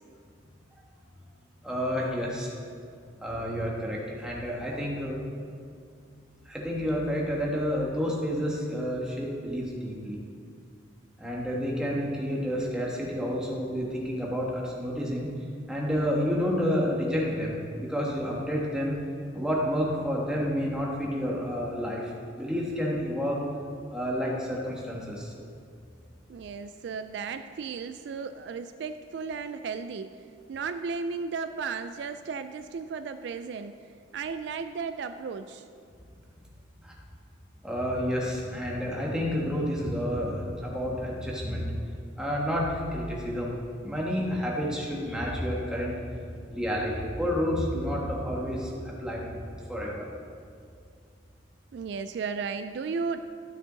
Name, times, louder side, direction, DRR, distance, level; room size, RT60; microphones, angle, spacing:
voice 1, 1.6-2.5 3.2-5.2 6.4-10.2 11.2-15.3 15.7-19.0 19.3-22.1 22.4-23.4 23.9-25.3 36.8-36.9 37.6-41.7 42.2-43.5 43.8-45.9 46.5-50.1, equal, 5° right, -3 dB, 1.4 m, -30 dB
voice 2, 26.3-30.2 30.5-33.8 34.1-35.7 51.7-53.3, right 5 dB, 60° right, 9 dB, 0.3 m, -34 dB
12.5 x 6.3 x 3.9 m, 2.2 s
head